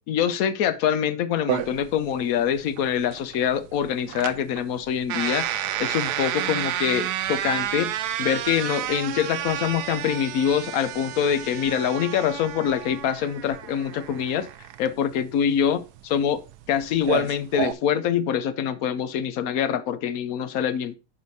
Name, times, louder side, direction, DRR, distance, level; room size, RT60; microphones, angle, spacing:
voice 1, 0.1-7.9 8.2-14.5 14.8-16.4 16.7-21.0, left 8 dB, 65° left, 1.1 m, -25 dB
sound 1, 1.5-17.7, right 12 dB, 80° right, 1.1 m, -31 dB
9.4 x 5.0 x 4.1 m
omnidirectional pair, 1.7 m